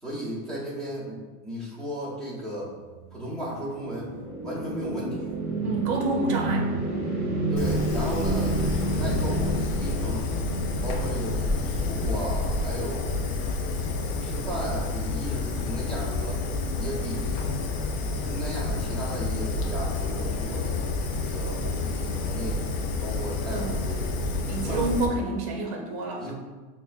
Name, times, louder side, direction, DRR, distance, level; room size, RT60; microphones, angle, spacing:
voice 1, 0.0-2.7 3.1-4.1 4.4-5.4 7.5-8.6 9.0-10.3 10.8-13.2 13.9-16.4 16.8-17.5 18.3-20.8 21.2-22.7 23.0-24.3 24.6-25.1 26.2-26.3, equal, ahead, -8 dB, 0.7 m, -35 dB
sound 1, 3.1-12.4, right 2 dB, 20° right, 1.0 m, -30 dB
voice 2, 5.6-6.7 7.0-7.2 23.5-23.8 24.5-26.3, right 2 dB, 45° right, 0 dB, 0.8 m, -29 dB
Fire, 7.6-25.1, left 3 dB, 45° left, 0.5 m, -29 dB
5.7 x 2.1 x 2.4 m, 1.3 s
supercardioid pair, 150°, 44 cm